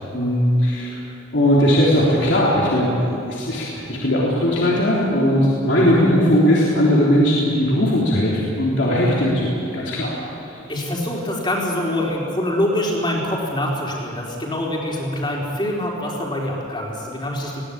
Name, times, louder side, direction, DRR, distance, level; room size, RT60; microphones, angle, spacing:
voice 1, 0.1-1.0 1.3-10.6, equal, 65° left, -5 dB, 3.5 m, -18 dB
voice 2, 10.7-17.6, left 1 dB, 25° left, -2 dB, 4.1 m, -24 dB
20.5 x 17.5 x 8.7 m, 2.9 s
head